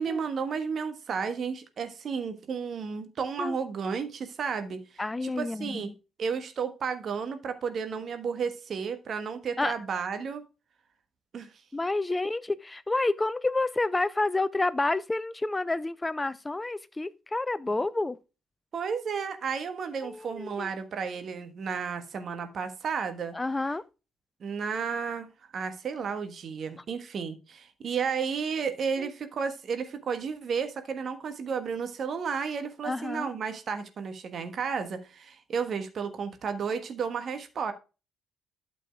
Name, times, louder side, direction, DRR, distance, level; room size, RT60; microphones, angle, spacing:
voice 1, 0.0-4.8 5.2-5.9 6.2-10.4 11.3-11.5 18.7-23.3 24.4-37.7, right 6 dB, 50° right, 1.3 m, -32 dB
voice 2, 5.0-5.9 9.6-9.7 11.7-18.2 20.0-20.7 23.3-23.8 29.0-29.1 32.8-33.3, left 2 dB, 20° left, 0.5 m, -29 dB
12.0 x 6.9 x 2.4 m
figure-of-eight pair, 45°, 0 cm